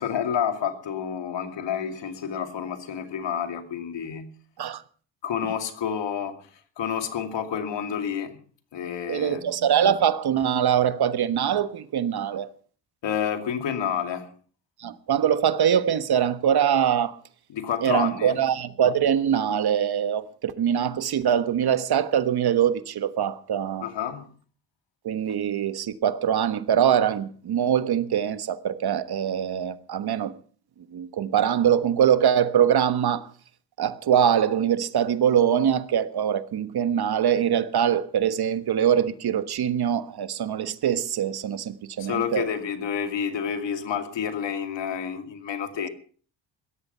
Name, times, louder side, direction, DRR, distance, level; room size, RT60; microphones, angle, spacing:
voice 1, 0.0-4.3 5.2-6.5 6.8-8.4 8.7-9.4 13.0-14.3 17.5-18.4 23.8-24.3 42.0-45.9, left 8 dB, 75° left, 2.5 m, -29 dB
voice 2, 9.1-12.5 14.8-17.2 17.8-23.8 25.0-30.3 30.9-33.3 33.8-42.5, right 9 dB, 60° right, 1.3 m, -23 dB
17.0 x 13.5 x 5.6 m
cardioid pair, 95°, 43 cm